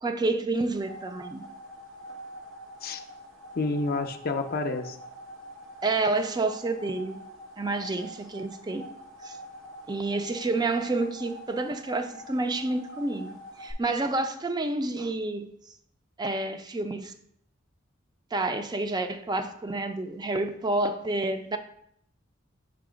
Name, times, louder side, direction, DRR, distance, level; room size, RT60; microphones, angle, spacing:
voice 1, 0.0-1.5 5.8-7.2 7.6-8.9 9.2-9.4 9.9-15.5 16.2-17.1 18.3-21.6, right 2 dB, 20° right, 0.4 m, -29 dB
sound 1, 0.5-13.7, equal, 85° right, 0.9 m, -45 dB
voice 2, 3.6-5.0, left 3 dB, 50° left, 0.5 m, -29 dB
6.8 x 2.8 x 5.0 m
head